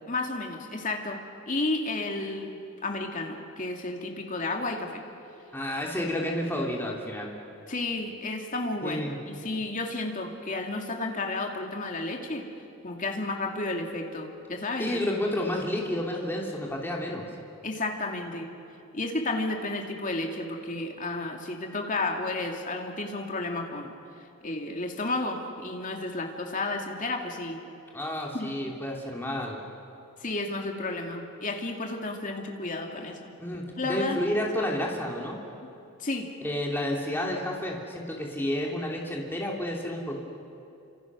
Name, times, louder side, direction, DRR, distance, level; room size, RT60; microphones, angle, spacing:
voice 1, 0.1-5.0 7.7-12.5 12.8-15.0 17.6-18.5 18.9-24.0 24.4-27.6 28.3-28.5 30.2-33.3 33.8-34.2 36.0-36.3, left 2 dB, 35° left, 2 dB, 2.6 m, -32 dB
voice 2, 5.5-7.3 8.8-9.2 14.8-17.2 27.9-29.6 33.4-35.4 36.4-40.2, left 1 dB, 10° left, -2 dB, 2.9 m, -30 dB
29.0 x 26.5 x 6.2 m, 2.7 s
head